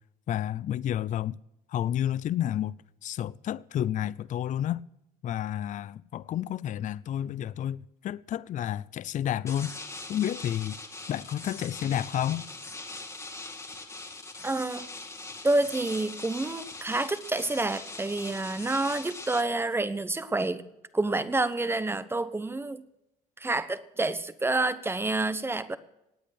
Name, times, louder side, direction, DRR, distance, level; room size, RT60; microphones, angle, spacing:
voice 1, 0.3-1.4 1.7-2.7 3.0-4.8 5.2-9.7 10.1-10.8 11.1-12.5, left 11 dB, 50° left, 0.5 m, -30 dB
sound 1, 9.5-19.4, left 3 dB, 15° left, 1.9 m, -41 dB
voice 2, 14.4-14.9 15.4-20.6 20.9-22.8 23.4-25.8, right 2 dB, 15° right, 1.0 m, -28 dB
18.5 x 9.0 x 6.4 m
cardioid pair, 110°, 17 cm